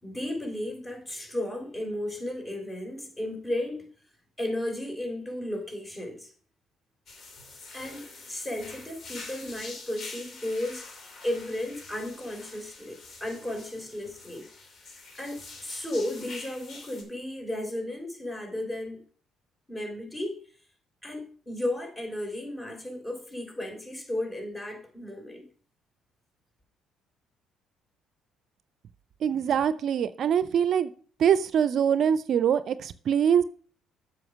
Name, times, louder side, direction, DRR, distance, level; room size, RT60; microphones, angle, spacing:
voice 1, 0.0-3.9 4.4-6.3 7.7-10.9 11.2-14.5 15.1-19.0 19.7-20.4 21.0-25.5, left 1 dB, 20° left, 3.6 m, -34 dB
sound 1, 7.1-17.0, left 3 dB, 55° left, 2.7 m, -45 dB
voice 2, 29.2-30.9 31.2-33.4, right 8 dB, 60° right, 0.5 m, -23 dB
7.7 x 5.8 x 6.1 m
supercardioid pair, 60°, 0 cm